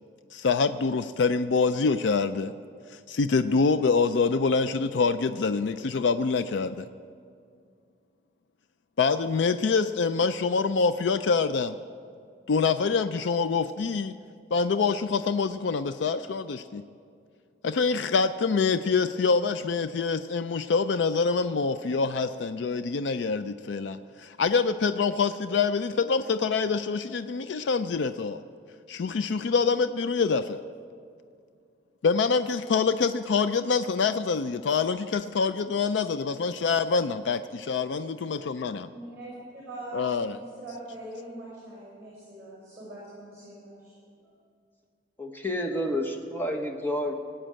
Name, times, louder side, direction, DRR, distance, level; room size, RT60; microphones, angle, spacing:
voice 1, 0.3-2.5 2.9-6.9 9.0-11.8 12.5-14.1 14.5-16.8 17.6-28.4 28.9-30.6 32.0-37.4 37.7-38.9 39.9-40.4, left 5 dB, 85° left, 12 dB, 0.4 m, -25 dB
voice 2, 38.9-43.9 44.2-44.4, right 1 dB, 15° right, -6 dB, 5.0 m, -42 dB
voice 3, 45.2-47.1, left 1 dB, 10° left, 3 dB, 1.1 m, -29 dB
18.0 x 8.9 x 7.6 m, 2.3 s
head